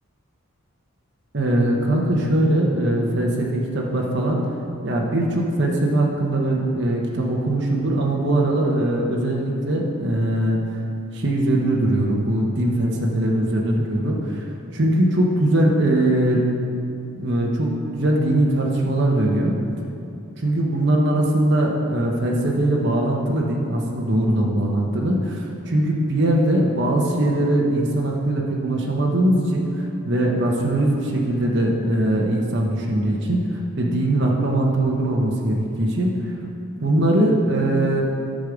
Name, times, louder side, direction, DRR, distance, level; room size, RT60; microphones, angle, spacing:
voice 1, 1.3-4.4 4.8-10.6 11.1-14.5 14.7-16.4 17.1-19.5 20.4-36.3 36.8-38.0, right 1 dB, 50° right, -2 dB, 1.1 m, -21 dB
10.0 x 6.5 x 5.1 m, 2.6 s
head